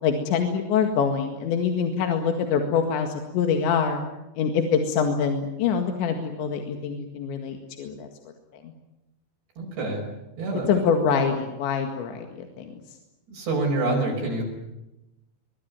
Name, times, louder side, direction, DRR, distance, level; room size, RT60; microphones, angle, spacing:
voice 1, 0.0-4.0 4.4-8.1 8.6-8.7 10.7-12.7, left 6 dB, 80° left, 4 dB, 4.2 m, -25 dB
voice 2, 9.6-10.1 10.4-10.8 13.3-14.4, right 2 dB, 70° right, -1 dB, 7.7 m, -26 dB
23.5 x 22.5 x 9.6 m, 0.95 s
omnidirectional pair, 5.1 m